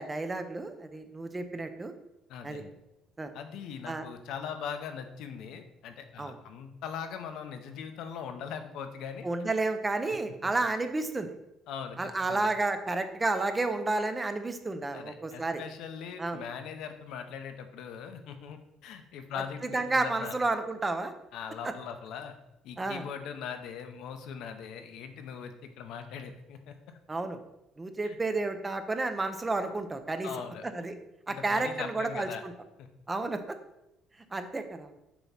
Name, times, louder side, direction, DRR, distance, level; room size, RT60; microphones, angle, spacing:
voice 1, 0.0-1.9 2.4-2.6 3.2-3.3 3.9-4.1 6.2-6.3 9.2-11.3 12.0-15.6 16.2-16.4 19.7-21.1 22.8-23.1 27.1-27.4 27.8-30.3 30.6-31.0 31.3-32.5 33.1-33.6 34.3-34.9, right 2 dB, 15° right, 8 dB, 0.5 m, -31 dB
voice 2, 2.3-2.7 3.3-9.3 11.7-12.5 14.9-20.4 21.3-22.4 22.6-27.0 28.0-28.2 30.2-30.6 31.3-32.4 32.8-32.9, left 7 dB, 70° left, 7 dB, 0.7 m, -40 dB
7.0 x 3.0 x 5.6 m, 0.89 s
cardioid pair, 140°, 0 cm